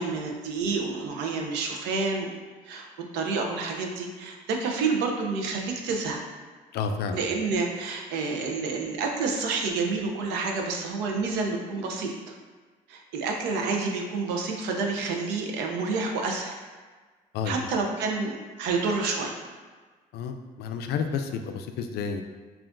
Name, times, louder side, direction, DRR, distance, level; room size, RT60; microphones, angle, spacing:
voice 1, 0.0-2.3 2.6-2.9 3.1-6.2 7.1-12.3 12.9-16.6 17.5-19.4, right 4 dB, 90° right, 2 dB, 0.6 m, -29 dB
voice 2, 6.7-7.2 17.3-17.7 20.1-22.2, left 5 dB, 70° left, 6 dB, 0.4 m, -30 dB
5.7 x 2.4 x 2.5 m, 1.4 s
cardioid pair, 110°, 17 cm